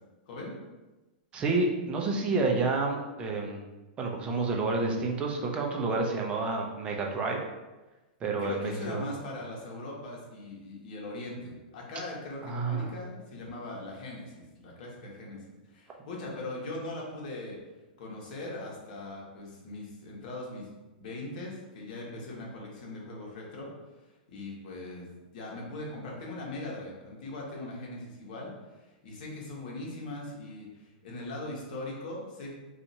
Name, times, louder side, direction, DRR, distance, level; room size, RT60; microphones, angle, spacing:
voice 1, 1.3-3.6 4.0-7.4 8.2-9.0 12.4-12.9, right 3 dB, 20° right, 0 dB, 0.5 m, -29 dB
voice 2, 8.4-17.6 18.0-20.7 20.9-23.7 24.0-32.5, left 2 dB, 60° left, -3 dB, 1.1 m, -40 dB
2.7 x 2.5 x 4.0 m, 1.1 s
hypercardioid pair, 135°, 5 cm